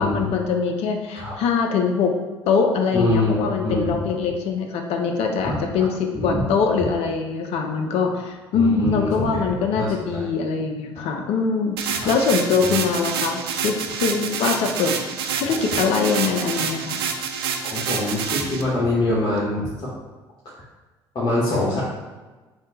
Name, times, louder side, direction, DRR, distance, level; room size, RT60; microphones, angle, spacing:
voice 1, 0.0-2.1 2.5-15.1 15.4-17.0, left 5 dB, 55° left, 4 dB, 0.6 m, -23 dB
voice 2, 2.9-3.9 5.4-5.6 6.1-6.4 8.5-10.2 11.9-12.1 12.6-12.8 15.5-16.0 17.6-19.9 21.1-21.8, left 1 dB, 35° left, -9 dB, 1.2 m, -25 dB
sound 1, 11.8-18.6, right 6 dB, 70° right, 0.4 m, -27 dB
3.6 x 2.7 x 4.1 m, 1.2 s
figure-of-eight pair, 50°, 13 cm